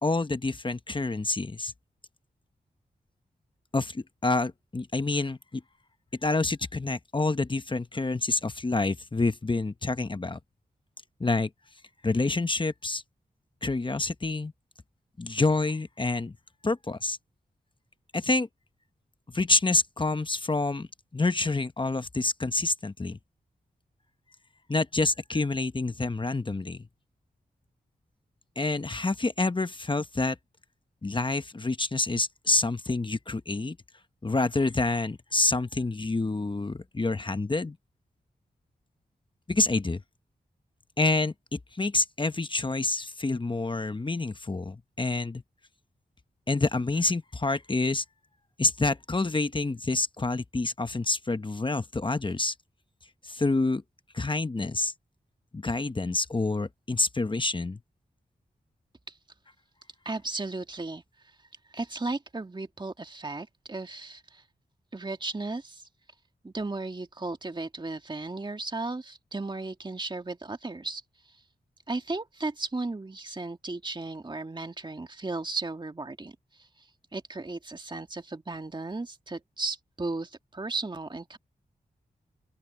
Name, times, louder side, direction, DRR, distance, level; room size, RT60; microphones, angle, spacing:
voice 1, 0.0-1.7 3.7-5.6 6.2-10.4 11.2-11.5 12.0-13.0 13.6-14.5 15.2-16.4 16.6-17.2 18.1-18.5 19.3-20.9 21.1-23.2 24.7-26.9 28.6-30.4 31.0-33.8 34.2-37.8 39.5-40.0 41.0-45.4 46.5-48.0 48.6-52.5 53.2-53.8 54.1-54.9 55.5-57.8, left 3 dB, 30° left, 1.0 m, -27 dB
voice 2, 60.1-61.0 61.7-64.4 64.9-65.8 66.4-71.0 71.9-76.9 77.1-81.4, right 3 dB, 30° right, 1.9 m, -35 dB
open air
cardioid pair, 50°, 16 cm